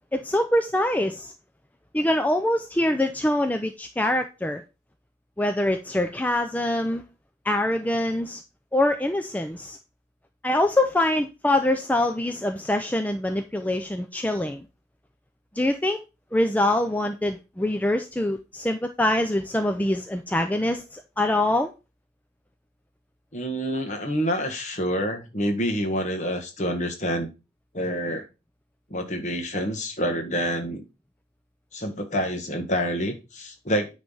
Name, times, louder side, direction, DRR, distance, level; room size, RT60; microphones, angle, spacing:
voice 1, 0.1-1.3 1.9-4.6 5.4-7.0 7.4-8.4 8.7-9.8 10.4-14.6 15.6-16.0 16.3-21.7, left 1 dB, 10° left, 0.4 m, -24 dB
voice 2, 23.3-27.3 27.7-28.3 28.9-30.8 31.7-33.9, equal, 40° left, 1.4 m, -27 dB
9.4 x 3.3 x 5.4 m
head